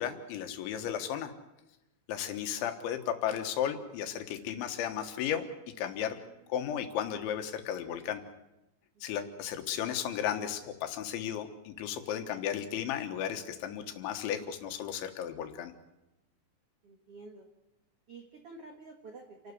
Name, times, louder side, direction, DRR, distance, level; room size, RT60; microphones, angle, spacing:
voice 1, 0.0-1.3 2.1-5.5 5.8-6.2 6.5-8.2 9.0-15.7, left 9 dB, 80° left, 7 dB, 3.7 m, -34 dB
voice 2, 6.0-6.5 16.8-17.5 18.1-19.5, right 3 dB, 80° right, 3 dB, 1.3 m, -50 dB
29.0 x 12.0 x 8.2 m, 0.95 s
omnidirectional pair, 5.4 m